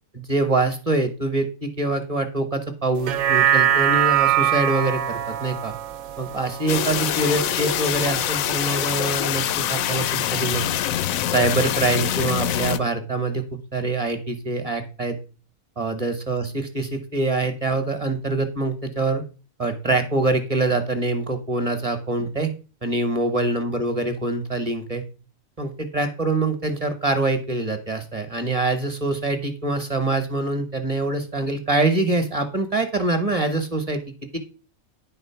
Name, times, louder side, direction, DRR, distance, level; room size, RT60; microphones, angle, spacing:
voice 1, 0.1-5.7 6.2-10.7 11.3-15.2 15.8-19.2 19.6-22.5 22.8-25.0 25.6-34.0 34.3-34.4, right 2 dB, 30° right, 8 dB, 1.1 m, -24 dB
sound 1, 3.0-7.5 7.9-8.0, right 11 dB, 75° right, 1.0 m, -22 dB
sound 2, 6.7-12.8, left 11 dB, 90° left, 1.0 m, -24 dB
9.9 x 4.3 x 5.7 m, 0.36 s
omnidirectional pair, 1.4 m